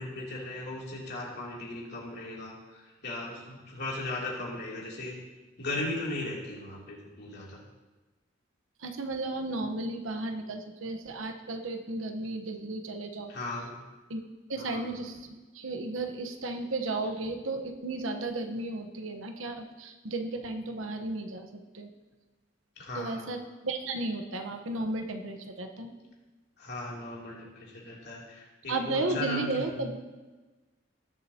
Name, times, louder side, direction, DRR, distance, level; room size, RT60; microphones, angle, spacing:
voice 1, 0.0-5.2 5.6-7.6 13.3-13.7 14.6-14.9 22.8-23.3 26.6-29.8, left 2 dB, 55° left, -4 dB, 3.0 m, -37 dB
voice 2, 8.8-13.3 14.1-14.2 14.5-21.5 21.7-21.9 23.0-25.9 28.7-30.0, right 2 dB, 85° right, 5 dB, 1.1 m, -34 dB
19.0 x 7.7 x 2.9 m, 1.2 s
head